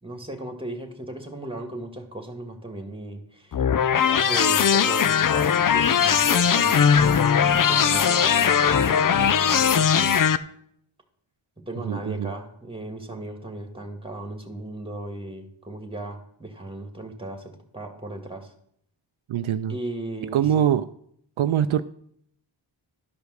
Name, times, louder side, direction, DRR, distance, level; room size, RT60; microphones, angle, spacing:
voice 1, 0.0-3.7 4.1-6.9 7.2-10.3 11.7-18.5 19.7-20.7, right 2 dB, 10° right, 4 dB, 1.9 m, -36 dB
sound 1, 3.5-10.4, left 7 dB, 45° left, 0.5 m, -19 dB
voice 2, 11.9-12.3 19.3-19.8 20.3-20.9 21.4-21.8, right 9 dB, 75° right, 11 dB, 0.5 m, -23 dB
12.0 x 5.1 x 6.4 m, 0.69 s
wide cardioid pair, 80°, 49 cm